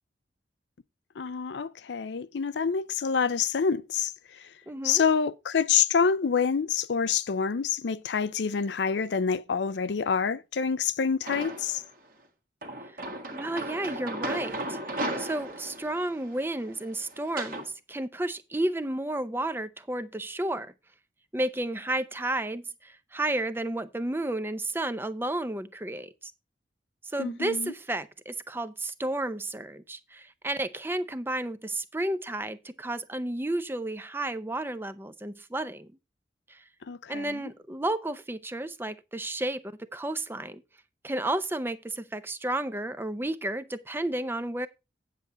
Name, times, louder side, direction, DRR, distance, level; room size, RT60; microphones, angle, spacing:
voice 1, 1.2-4.5 4.8-11.8 27.2-27.7 36.8-37.5, left 6 dB, 80° left, 0.5 m, -27 dB
voice 2, 4.7-5.0 13.3-20.7 21.3-26.3 27.1-35.9 36.5-36.6 37.1-39.6 39.9-40.6 41.0-44.7, right 1 dB, 15° right, 0.5 m, -32 dB
sound 1, 11.3-11.9 12.6-17.7, right 1 dB, 50° right, 1.5 m, -36 dB
8.5 x 7.5 x 4.0 m
head